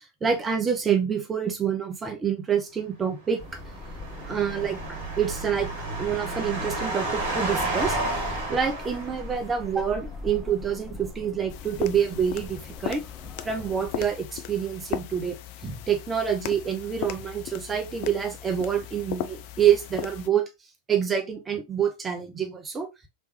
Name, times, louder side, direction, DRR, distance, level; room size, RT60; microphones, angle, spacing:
voice 1, 0.2-3.4 4.3-4.8 5.2-5.7 6.0-8.0 8.5-13.0 13.4-15.4 15.6-20.5 20.9-22.9, right 8 dB, 20° right, 0.6 m, -27 dB
sound 1, 3.3-9.7, right 2 dB, 50° right, 1.2 m, -31 dB
sound 2, 3.4-14.1, left 2 dB, 15° left, 1.0 m, -41 dB
sound 3, 11.5-20.3, left 11 dB, 45° left, 0.4 m, -37 dB
3.2 x 3.1 x 3.1 m
figure-of-eight pair, 90°, 0 cm